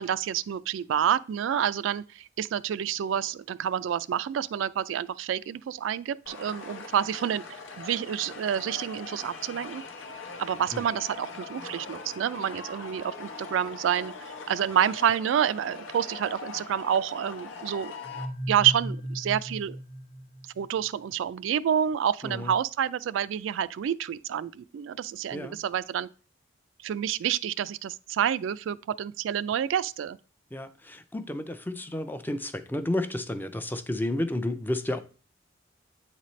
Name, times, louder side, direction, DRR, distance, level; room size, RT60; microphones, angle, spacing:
voice 1, 0.0-7.4 7.8-9.8 10.4-14.1 14.5-17.9 18.5-19.8 20.6-26.1 26.8-30.2, right 9 dB, 75° right, 0.3 m, -28 dB
sound 1, 6.3-18.3, left 4 dB, 80° left, 0.9 m, -41 dB
sound 2, 18.0-20.9, equal, 35° left, 1.0 m, -36 dB
voice 2, 30.5-35.0, left 1 dB, 10° left, 0.4 m, -31 dB
8.7 x 4.1 x 3.1 m
head